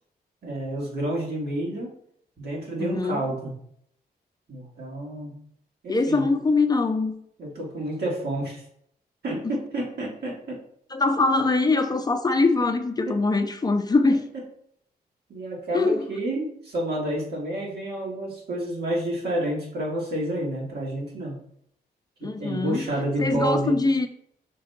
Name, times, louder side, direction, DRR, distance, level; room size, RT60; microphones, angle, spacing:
voice 1, 0.4-1.9 2.4-3.5 4.5-5.4 5.8-6.3 7.4-8.6 9.2-10.6 13.1-13.2 15.3-21.4 22.2-23.8, right 1 dB, 75° right, -4 dB, 2.6 m, -29 dB
voice 2, 2.8-3.2 5.9-7.1 10.9-14.2 15.7-16.0 22.2-22.8 23.2-24.1, left 3 dB, 25° left, 6 dB, 0.6 m, -22 dB
6.0 x 3.7 x 5.8 m, 0.69 s
wide cardioid pair, 155°, 17 cm